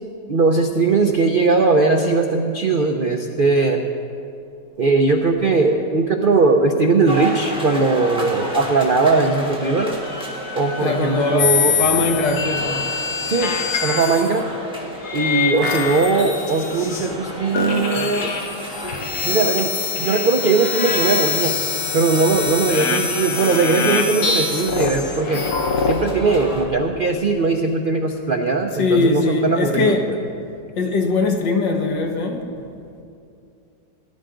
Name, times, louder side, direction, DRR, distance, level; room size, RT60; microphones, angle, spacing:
voice 1, 0.3-3.9 4.8-9.9 10.5-11.8 13.3-13.5 13.8-14.4 15.1-18.3 19.2-21.6 21.9-25.5 25.8-30.2, right 3 dB, 75° right, 0.4 m, -19 dB
sound 1, 7.1-26.7, right 1 dB, 5° right, 1.5 m, -34 dB
Wind instrument woodwind instrument, 10.0-14.1, left 4 dB, 45° right, 2.5 m, -39 dB
voice 2, 10.8-12.9 28.8-30.1 30.8-32.4, left 3 dB, 80° left, 2.0 m, -21 dB
sound 2, 11.4-14.4 15.0-17.3 17.5-26.0, left 5 dB, 60° left, 1.6 m, -24 dB
19.0 x 11.5 x 3.8 m
omnidirectional pair, 1.9 m